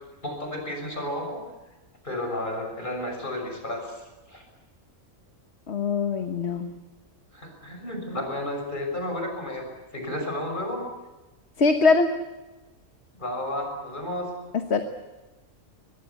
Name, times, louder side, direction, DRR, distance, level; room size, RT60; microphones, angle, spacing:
voice 1, 0.2-1.4 2.0-4.4 7.3-9.7 9.9-10.8 13.2-14.3, left 1 dB, 35° left, 3 dB, 6.5 m, -32 dB
voice 2, 5.7-6.7 11.6-12.1 14.7-14.8, left 4 dB, 55° left, 7 dB, 1.5 m, -22 dB
24.0 x 21.5 x 8.4 m, 1.1 s
omnidirectional pair, 1.4 m